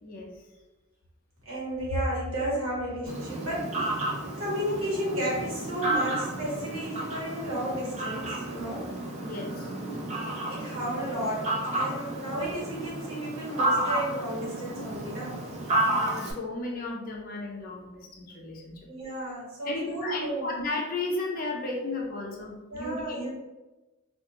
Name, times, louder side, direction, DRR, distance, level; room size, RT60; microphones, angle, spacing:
voice 1, 1.4-4.1 4.4-8.9 10.5-15.4 18.9-20.5 22.7-23.3, right 1 dB, 75° right, -6 dB, 1.2 m, -33 dB
Fowl, 3.1-16.3, right 1 dB, 35° right, 0.5 m, -32 dB
voice 2, 9.2-9.7 15.9-18.9 19.2-19.3 19.7-23.3, left 2 dB, 45° left, -1 dB, 0.5 m, -34 dB
2.4 x 2.3 x 3.0 m, 1.1 s
head